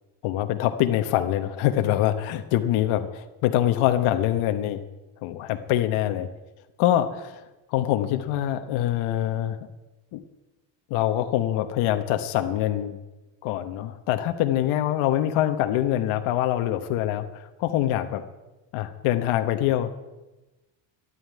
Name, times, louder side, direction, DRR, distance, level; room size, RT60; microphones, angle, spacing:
voice 1, 0.2-4.8 5.2-6.3 6.8-7.4 7.7-9.6 10.1-10.2 10.9-13.0 13.4-17.2 17.6-18.2 18.7-20.1, left 12 dB, 80° left, 7 dB, 1.2 m, -24 dB
13.0 x 11.5 x 9.4 m, 1.1 s
cardioid pair, 150°, 48 cm